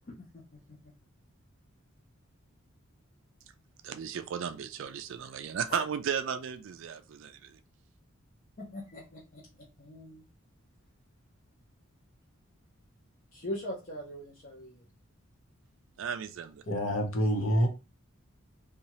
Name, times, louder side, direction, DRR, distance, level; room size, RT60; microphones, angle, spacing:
voice 1, 0.2-0.6 5.7-5.8 8.6-10.2 13.3-14.8, left 1 dB, 40° left, 0.6 m, -41 dB
voice 2, 3.8-7.6 16.0-16.6, right 7 dB, 65° right, 0.3 m, -35 dB
voice 3, 16.7-17.7, equal, 80° left, 0.9 m, -27 dB
2.7 x 2.3 x 3.0 m
head